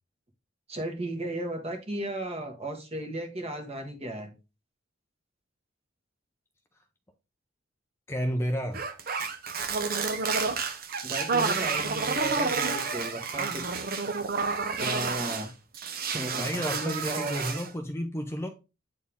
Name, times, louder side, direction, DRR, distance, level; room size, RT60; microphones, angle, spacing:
voice 1, 0.7-4.3 11.0-13.8 14.8-15.5 16.1-17.3, right 1 dB, 30° right, 1.6 m, -35 dB
voice 2, 8.1-8.8 16.3-18.5, equal, 15° left, 0.6 m, -31 dB
sound 1, 8.7-15.5 15.7-17.7, right 4 dB, 50° right, 0.8 m, -30 dB
8.5 x 4.4 x 3.6 m
head